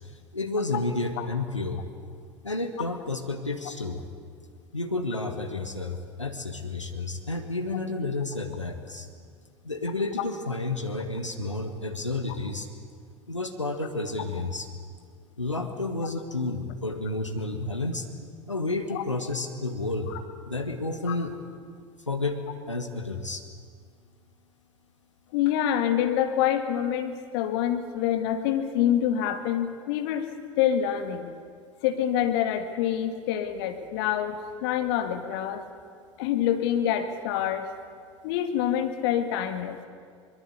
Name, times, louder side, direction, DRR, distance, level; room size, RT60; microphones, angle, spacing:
voice 1, 0.3-1.8 2.4-4.0 4.7-9.1 9.6-12.7 13.3-14.7 15.4-18.1 18.5-20.1 20.4-21.3 22.1-22.4 22.7-23.4, left 2 dB, 85° left, 5 dB, 1.7 m, -31 dB
voice 2, 25.3-30.3 30.6-31.3 31.8-35.6 36.2-37.7 38.2-39.8, left 10 dB, 55° left, 7 dB, 2.2 m, -26 dB
24.0 x 21.5 x 8.2 m, 2.1 s
figure-of-eight pair, 75°, 15 cm